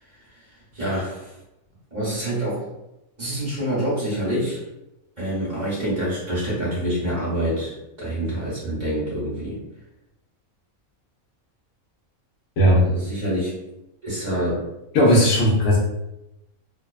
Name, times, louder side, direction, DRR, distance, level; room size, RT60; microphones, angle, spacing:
voice 1, 0.1-1.4 1.9-2.7 3.2-4.6 5.2-9.6 12.8-13.5 14.0-14.6, right 1 dB, 35° right, -8 dB, 1.1 m, -27 dB
voice 2, 14.9-15.8, equal, 70° left, -3 dB, 1.0 m, -16 dB
2.6 x 2.1 x 2.3 m, 0.91 s
omnidirectional pair, 1.5 m